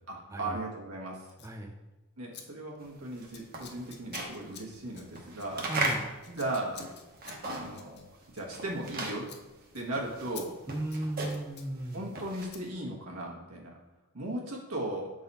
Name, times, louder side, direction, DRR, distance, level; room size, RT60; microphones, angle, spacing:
voice 1, 0.1-1.3 2.2-5.7 6.2-6.8 7.4-8.0 8.3-9.3 9.7-10.5 11.9-13.8 14.1-15.1, right 1 dB, 85° right, -2 dB, 1.3 m, -37 dB
Scissors, 1.3-1.6 2.3-2.4 2.7-3.0 3.3-9.0 9.2-9.4 9.7-9.9 10.3-10.5 10.8-11.7 12.5-12.6, left 8 dB, 50° left, 0.6 m, -49 dB
sound 1, 2.9-7.9 8.2-12.7, right 2 dB, 40° right, 0.9 m, -37 dB
voice 2, 5.7-6.1 10.7-12.0, right 1 dB, 15° right, 1 dB, 0.5 m, -35 dB
6.6 x 3.9 x 4.1 m, 1.1 s
head